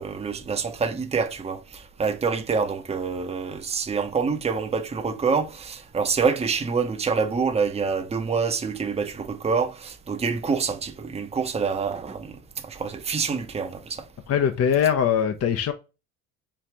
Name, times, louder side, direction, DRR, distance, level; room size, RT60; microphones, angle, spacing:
voice 1, 0.0-14.0, right 5 dB, 15° right, 0.7 m, -26 dB
voice 2, 14.3-15.7, left 8 dB, 40° left, 0.6 m, -21 dB
4.6 x 2.5 x 3.3 m
supercardioid pair, 70°, 37 cm